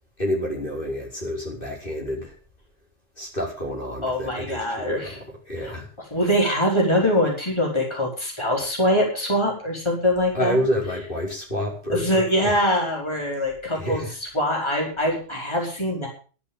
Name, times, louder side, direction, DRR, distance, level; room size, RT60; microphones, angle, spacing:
voice 1, 0.2-2.4 3.2-5.1 5.5-5.9 10.3-12.5 13.7-14.1, equal, 45° left, -2 dB, 5.5 m, -28 dB
voice 2, 4.0-5.2 5.6-10.6 11.9-16.1, equal, 20° left, -1 dB, 4.9 m, -23 dB
12.0 x 12.0 x 7.1 m, 0.38 s
omnidirectional pair, 1.3 m